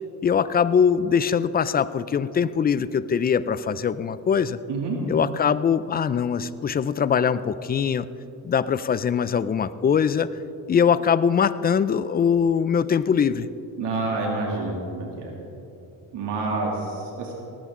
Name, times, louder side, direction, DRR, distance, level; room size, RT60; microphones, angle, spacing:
voice 1, 0.2-4.6 5.1-8.1 8.4-10.3 10.7-13.5, left 7 dB, 25° left, 16 dB, 0.3 m, -22 dB
voice 2, 13.8-15.3 16.1-17.3, right 3 dB, 70° right, -1 dB, 2.6 m, -28 dB
18.5 x 14.0 x 3.7 m, 3.0 s
cardioid pair, 95°, 44 cm